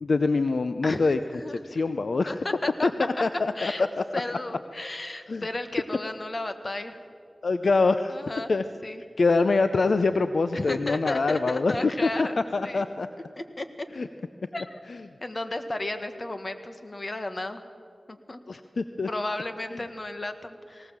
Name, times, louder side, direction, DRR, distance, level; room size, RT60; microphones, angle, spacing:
voice 1, 0.0-1.2 1.5-2.4 2.8-3.7 5.3-5.4 7.4-8.1 8.5-8.6 9.2-11.7 12.0-12.3 12.5-13.1 14.0-14.1 14.9-15.0 18.5-19.1 19.7-19.8, left 3 dB, 75° left, 10 dB, 0.6 m, -24 dB
voice 2, 0.8-1.6 2.2-3.1 3.5-3.9 4.1-7.0 8.1-8.5 8.8-9.0 10.5-12.3 12.6-12.8 13.4-13.9 14.5-14.8 15.2-17.6 18.1-18.4 19.1-20.9, left 2 dB, 45° left, 8 dB, 1.6 m, -33 dB
19.0 x 18.0 x 7.4 m, 2.3 s
cardioid pair, 45°, 0 cm